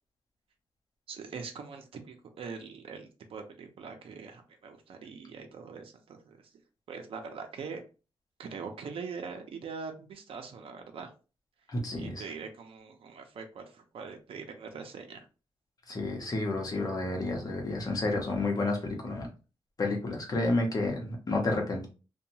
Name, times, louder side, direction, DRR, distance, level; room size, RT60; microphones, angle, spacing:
voice 1, 1.1-6.4 6.9-7.8 8.4-11.1 12.0-15.3, right 5 dB, 70° right, 5 dB, 0.5 m, -42 dB
voice 2, 11.7-12.2 15.9-19.3 19.8-21.9, left 2 dB, 40° left, 1 dB, 0.9 m, -30 dB
2.8 x 2.2 x 2.7 m, 0.33 s
wide cardioid pair, 130°, 10 cm